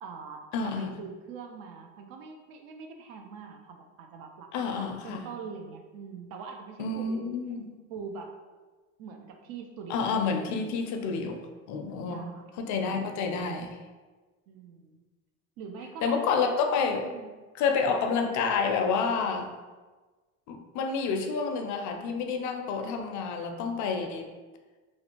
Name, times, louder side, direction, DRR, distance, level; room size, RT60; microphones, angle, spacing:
voice 1, 0.0-7.3 7.9-8.4 9.0-10.1 12.1-12.4 14.5-15.0 15.6-16.2 17.0-17.3, right 5 dB, 65° right, 4 dB, 0.5 m, -43 dB
voice 2, 0.5-0.9 4.5-5.2 6.8-7.8 9.9-11.4 11.7-12.3 12.6-13.8 16.0-17.1 17.6-19.5 20.5-24.3, left 5 dB, 55° left, 4 dB, 0.4 m, -29 dB
2.5 x 2.0 x 2.9 m, 1.3 s
supercardioid pair, 90°, 37 cm